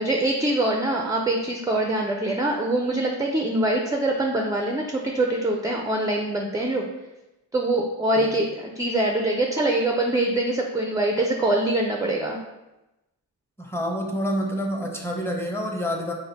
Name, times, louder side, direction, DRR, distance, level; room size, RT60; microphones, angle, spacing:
voice 1, 0.0-6.8 7.5-12.4, right 1 dB, 10° right, 1 dB, 0.3 m, -24 dB
voice 2, 13.6-16.1, equal, 5° left, 0 dB, 0.7 m, -28 dB
4.1 x 2.1 x 3.9 m, 0.98 s
cardioid pair, 70°, 44 cm